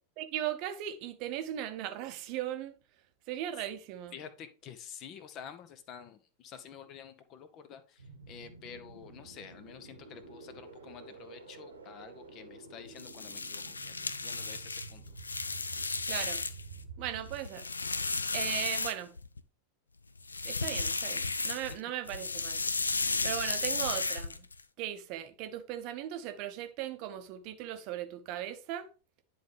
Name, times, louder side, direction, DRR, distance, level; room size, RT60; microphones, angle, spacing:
voice 1, 0.2-2.7 3.3-4.1 16.1-16.4 17.0-17.7 18.3-19.1 20.4-22.6 23.2-24.4 24.8-28.9, right 12 dB, 45° right, 0.7 m, -38 dB
voice 2, 4.1-15.2 21.7-21.8, left 7 dB, 35° left, 0.8 m, -49 dB
sound 1, 8.0-17.4, right 4 dB, 75° right, 1.0 m, -49 dB
sound 2, 12.9-16.8 17.2-19.4 20.2-21.8 22.1-24.6, left 3 dB, 75° left, 0.4 m, -34 dB
10.5 x 3.7 x 3.3 m
figure-of-eight pair, 90°, 0 cm